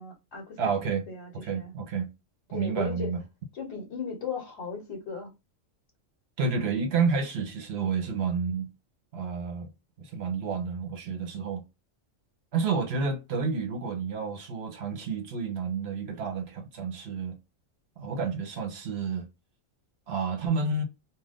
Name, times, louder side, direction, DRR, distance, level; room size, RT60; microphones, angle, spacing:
voice 1, 0.0-1.7 2.5-3.1 3.5-5.3, left 6 dB, 55° left, 1.1 m, -37 dB
voice 2, 0.6-1.0 1.4-2.1 2.5-3.2 6.4-8.7 9.1-9.7 10.0-11.6 12.5-17.4 18.0-19.3 20.1-20.8, right 5 dB, 55° right, 0.9 m, -30 dB
2.4 x 2.4 x 3.4 m
omnidirectional pair, 1.4 m